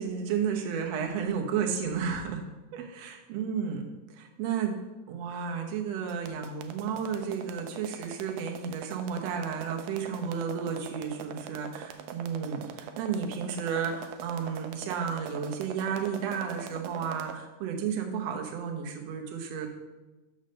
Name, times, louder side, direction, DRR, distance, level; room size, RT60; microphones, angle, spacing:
voice 1, 0.0-2.4 2.7-19.7, right 7 dB, 65° right, 2 dB, 1.9 m, -32 dB
sound 1, 6.1-17.4, right 8 dB, 80° right, 2.0 m, -43 dB
6.1 x 5.2 x 6.4 m, 1.1 s
omnidirectional pair, 3.7 m